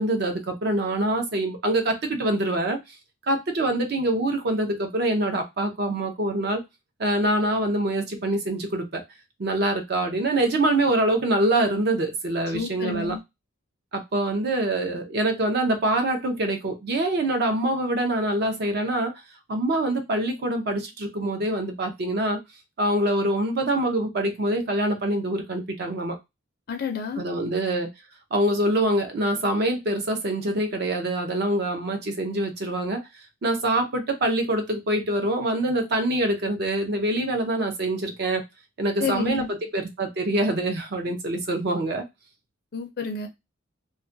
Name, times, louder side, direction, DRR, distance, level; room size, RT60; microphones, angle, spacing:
voice 1, 0.0-2.8 3.3-6.6 7.0-9.0 9.4-13.1 13.9-19.1 19.5-22.4 22.8-26.2 27.2-27.9 28.3-33.0 33.4-38.4 38.8-42.0, right 1 dB, 50° right, 5 dB, 0.5 m, -25 dB
voice 2, 12.5-13.2 26.7-27.2 39.0-39.5 42.7-43.3, left 5 dB, 50° left, 5 dB, 0.4 m, -29 dB
2.3 x 2.1 x 2.5 m, 0.21 s
head